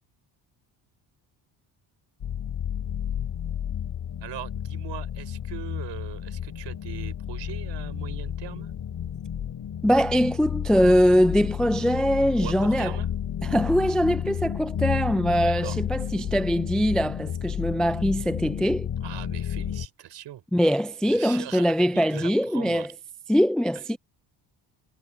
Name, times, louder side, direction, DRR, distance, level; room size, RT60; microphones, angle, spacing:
sound 1, 2.2-19.9, left 9 dB, 50° left, 3.5 m, -31 dB
voice 1, 4.2-8.7 12.4-13.1 15.3-15.8 19.0-20.4 21.0-21.6 21.9-22.9, right 12 dB, 65° right, 5.0 m, -40 dB
voice 2, 9.8-13.0 13.4-18.9 20.5-22.9 23.3-24.0, equal, ahead, 0.4 m, -22 dB
cardioid pair, 120°, 46 cm